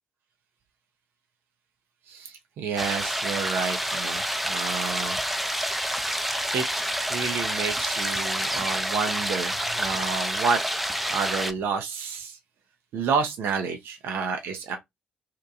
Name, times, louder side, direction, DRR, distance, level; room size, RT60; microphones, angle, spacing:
voice 1, 2.1-5.2 6.5-10.6 11.1-12.4 12.9-14.8, right 5 dB, 65° right, 0.5 m, -30 dB
sound 1, 2.8-11.5, equal, ahead, 0.4 m, -28 dB
2.8 x 2.2 x 2.4 m
hypercardioid pair, 45°, 4 cm